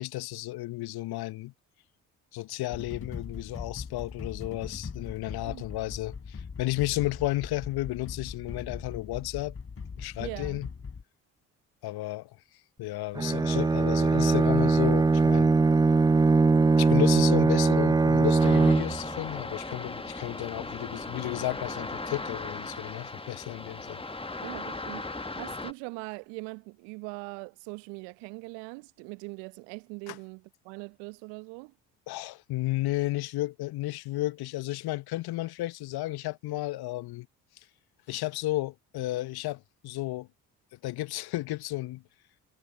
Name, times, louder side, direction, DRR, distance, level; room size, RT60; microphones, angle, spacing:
voice 1, 0.0-1.5 2.3-9.6 10.0-10.7 11.8-12.3 12.8-15.5 16.8-24.0 30.1-30.2 32.1-37.3 38.1-40.3 40.8-42.0, left 18 dB, 55° left, 1.2 m, -33 dB
sound 1, 2.7-11.0, left 5 dB, 30° left, 3.4 m, -40 dB
voice 2, 10.2-10.6 24.4-31.7, right 33 dB, 65° right, 1.2 m, -41 dB
Bowed string instrument, 13.1-19.1, right 4 dB, 10° right, 0.5 m, -21 dB
sound 2, 18.4-25.7, left 2 dB, 10° left, 1.6 m, -37 dB
figure-of-eight pair, 45°, 45 cm